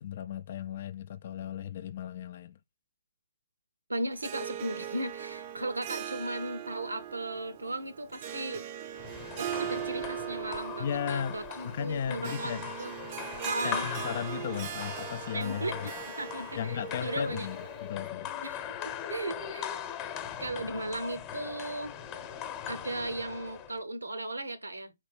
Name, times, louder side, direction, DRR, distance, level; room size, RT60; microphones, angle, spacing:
voice 1, 0.0-2.6 10.8-11.4 11.6-12.7 13.6-15.9 16.6-18.3, left 8 dB, 50° left, 0.3 m, -35 dB
voice 2, 3.9-8.7 9.4-12.5 12.8-12.9 13.4-13.9 15.3-15.9 16.2-17.5 18.4-19.7 20.4-21.9 22.7-24.9, right 1 dB, 85° right, 0.8 m, -36 dB
Harp, 4.1-17.9, right 10 dB, 35° right, 0.5 m, -40 dB
sound 1, 8.9-23.8, left 8 dB, 25° left, 0.9 m, -40 dB
4.2 x 3.3 x 3.3 m
figure-of-eight pair, 135°, 0 cm